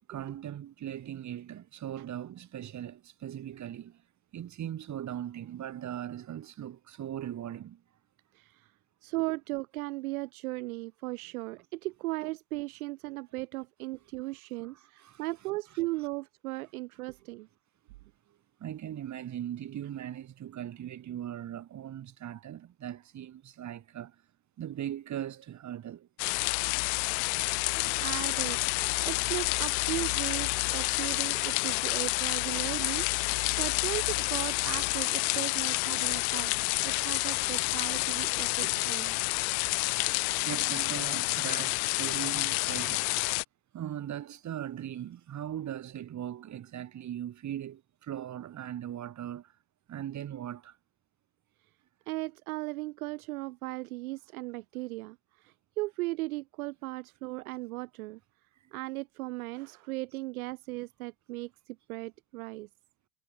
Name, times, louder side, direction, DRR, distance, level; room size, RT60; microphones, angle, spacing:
voice 1, 0.1-4.0 4.3-7.8 14.7-15.2 18.3-24.2 24.6-26.1 40.1-43.2 43.7-49.6 49.9-50.8, right 11 dB, 35° right, 6.7 m, -39 dB
voice 2, 8.3-8.7 9.0-17.5 27.7-28.6 29.1-36.5 36.8-39.1 52.1-58.2 58.7-62.7, right 20 dB, 65° right, 2.1 m, -37 dB
sound 1, 26.2-43.4, left 38 dB, 45° left, 0.5 m, -29 dB
hypercardioid pair, 80°, 47 cm